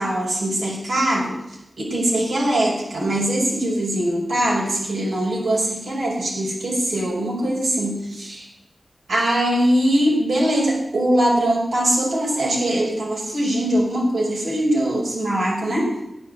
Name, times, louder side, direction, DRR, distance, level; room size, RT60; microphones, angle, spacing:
voice 1, 0.0-1.3 1.8-8.5 9.1-15.9, right 1 dB, 90° right, -5 dB, 5.5 m, -21 dB
12.5 x 9.7 x 7.9 m, 0.87 s
wide cardioid pair, 60°, 0 cm